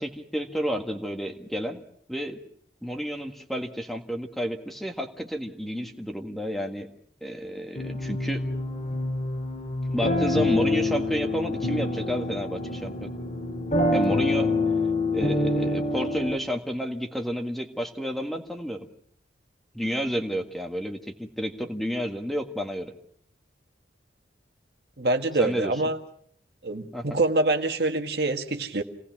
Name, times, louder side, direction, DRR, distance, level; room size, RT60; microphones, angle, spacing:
voice 1, 0.0-1.8 2.1-2.4 2.8-6.9 7.2-8.5 9.9-13.1 13.9-14.5 15.1-18.9 19.7-22.9 25.4-25.7 26.9-27.0, equal, ahead, 4 dB, 1.7 m, -30 dB
sound 1, 7.7-16.4, left 2 dB, 40° left, 2.2 m, -26 dB
voice 2, 25.0-26.0 26.6-28.8, right 2 dB, 60° right, 5 dB, 1.7 m, -25 dB
28.5 x 18.5 x 6.1 m, 0.64 s
head